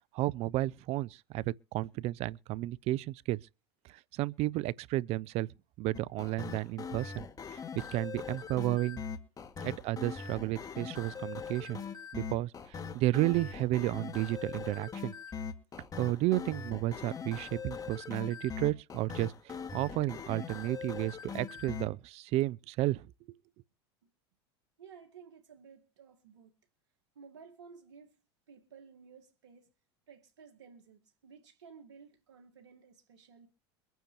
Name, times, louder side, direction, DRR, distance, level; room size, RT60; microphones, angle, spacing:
voice 1, 0.1-3.4 4.1-5.5 5.8-7.3 7.5-9.0 9.6-11.8 12.1-12.5 12.9-15.1 16.0-19.3 19.7-23.4, right 17 dB, 50° right, 0.5 m, -32 dB
sound 1, 5.9-21.9, left 6 dB, 25° left, 2.1 m, -41 dB
voice 2, 24.8-26.5 27.1-28.2 28.5-29.7 30.1-33.5, right 6 dB, 85° right, 1.6 m, -55 dB
23.5 x 9.1 x 3.0 m
hypercardioid pair, 105°, 14 cm